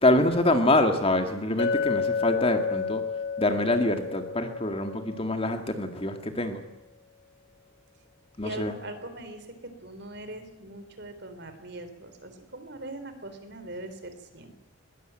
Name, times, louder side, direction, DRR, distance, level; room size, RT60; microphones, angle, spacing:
voice 1, 0.0-3.0 3.4-6.6 8.4-8.7, left 1 dB, 25° left, 6 dB, 2.1 m, -25 dB
Chink clink, 1.6-5.8, left 5 dB, 55° left, 1.6 m, -31 dB
voice 2, 8.4-9.5 9.8-14.5, right 1 dB, 55° right, 8 dB, 3.9 m, -41 dB
21.0 x 19.5 x 9.1 m, 1.0 s
head